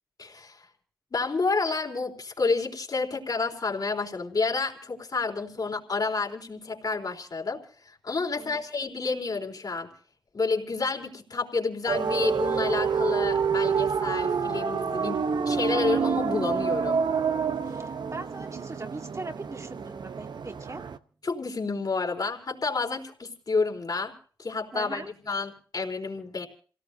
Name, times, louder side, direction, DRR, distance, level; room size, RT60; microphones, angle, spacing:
voice 1, 0.2-0.7 1.1-9.9 10.3-15.1 15.5-17.0 21.2-24.1 24.4-26.5, left 4 dB, 55° left, 2 dB, 4.0 m, -29 dB
sound 1, 11.9-21.0, right 6 dB, 65° right, 0.9 m, -28 dB
voice 2, 14.9-15.4 17.6-20.9 24.7-25.1, right 3 dB, 40° right, 4 dB, 2.3 m, -41 dB
28.0 x 17.5 x 2.7 m, 0.42 s
cardioid pair, 45°, 8 cm